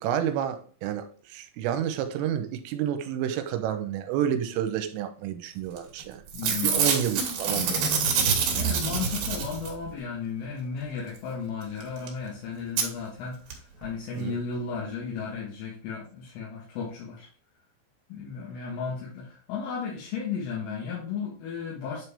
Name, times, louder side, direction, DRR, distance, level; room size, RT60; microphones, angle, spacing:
voice 1, 0.0-7.8 14.1-14.4, right 10 dB, 85° right, 3.3 m, -30 dB
Packing tape duct tape / Tearing, 5.8-6.0 6.3-9.9 11.8-11.9 12.1-12.2 12.8-12.9 13.5-13.6 13.8-13.9, right 6 dB, 60° right, 2.7 m, -26 dB
voice 2, 6.3-6.9 8.5-17.3 18.1-22.0, left 5 dB, 75° left, 4.1 m, -34 dB
9.5 x 4.6 x 3.3 m
omnidirectional pair, 5.9 m